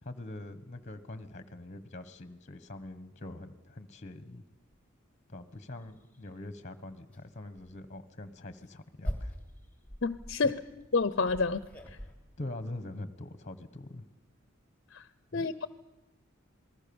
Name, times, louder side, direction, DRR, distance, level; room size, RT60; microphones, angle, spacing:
voice 1, 0.0-4.4 5.3-9.3 10.4-10.5 12.4-14.1 15.3-15.4, left 2 dB, 35° left, 13 dB, 1.3 m, -43 dB
sound 1, 4.7-4.8 5.3-5.4 5.8-6.3 7.0-7.2 7.6-7.8 8.4-12.1, equal, 5° left, 3.1 m, -42 dB
voice 2, 10.0-10.6 10.9-11.6 14.9-15.0 15.3-15.7, left 4 dB, 55° left, 15 dB, 0.7 m, -28 dB
27.5 x 19.5 x 7.1 m, 0.97 s
head